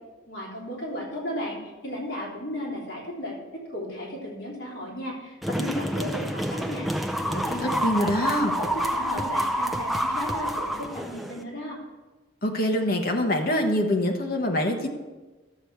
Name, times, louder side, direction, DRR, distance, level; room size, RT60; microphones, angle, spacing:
voice 1, 0.3-11.8, left 1 dB, 70° left, -4 dB, 3.3 m, -35 dB
sound 1, 5.4-11.4, equal, ahead, 0.5 m, -28 dB
voice 2, 7.8-8.5 12.4-14.9, left 1 dB, 50° left, 2 dB, 1.3 m, -24 dB
13.0 x 7.0 x 4.6 m, 1.2 s
head